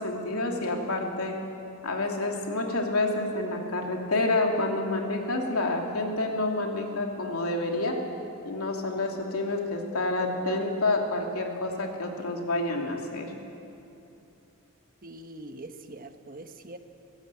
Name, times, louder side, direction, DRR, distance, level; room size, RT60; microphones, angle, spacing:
voice 1, 0.0-1.4 1.8-8.0 8.4-13.3, left 2 dB, 90° left, 1 dB, 2.9 m, -28 dB
voice 2, 15.0-16.8, right 2 dB, 40° right, 7 dB, 1.2 m, -43 dB
22.5 x 16.5 x 8.5 m, 2.8 s
head